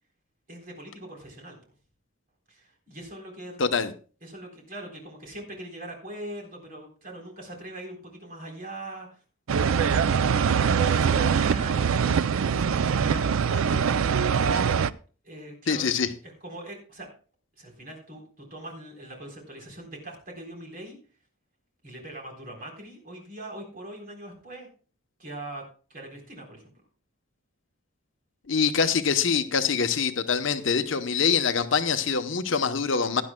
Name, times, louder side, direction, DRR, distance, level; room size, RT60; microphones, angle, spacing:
voice 1, 0.5-1.6 2.5-3.6 4.2-9.2 9.5-14.4 15.2-15.9 16.2-17.1 17.6-21.0 21.8-24.7 25.2-25.6 25.9-26.7, right 1 dB, 40° right, 3.8 m, -42 dB
voice 2, 3.6-3.9 15.7-16.1 28.5-33.2, left 6 dB, 60° left, 0.8 m, -24 dB
sound 1, 9.5-14.9, right 6 dB, 75° right, 0.4 m, -23 dB
17.0 x 11.0 x 2.2 m
head